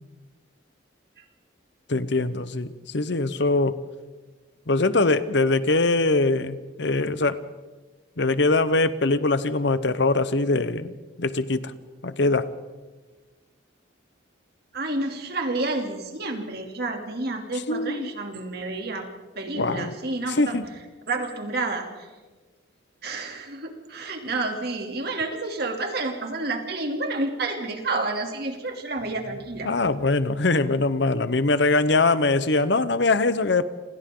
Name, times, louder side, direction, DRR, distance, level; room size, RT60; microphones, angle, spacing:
voice 1, 1.9-3.8 4.7-7.4 8.2-10.9 11.2-11.7 12.0-12.5 17.7-18.1 19.6-19.9 20.3-20.6 29.6-33.6, left 3 dB, 60° left, 13 dB, 1.0 m, -22 dB
voice 2, 14.7-19.1 19.3-20.6 21.1-22.1 23.0-29.7, right 2 dB, 55° right, 3 dB, 3.0 m, -30 dB
29.0 x 26.0 x 3.9 m, 1.3 s
head